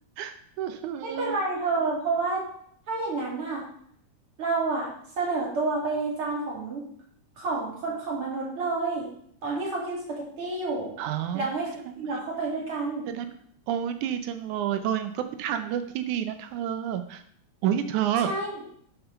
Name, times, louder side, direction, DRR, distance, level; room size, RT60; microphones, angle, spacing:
voice 1, 0.2-1.4 9.5-9.6 11.0-11.5 11.9-12.2 13.1-13.4 13.7-17.2 17.6-18.3, right 10 dB, 80° right, 9 dB, 2.2 m, -30 dB
voice 2, 1.0-2.5 2.9-3.6 4.4-4.9 5.2-6.8 7.4-9.1 9.4-10.9 11.3-11.7 12.0-13.1 18.2-18.6, right 3 dB, 45° right, -3 dB, 4.0 m, -29 dB
10.5 x 5.7 x 5.8 m, 0.63 s
omnidirectional pair, 3.4 m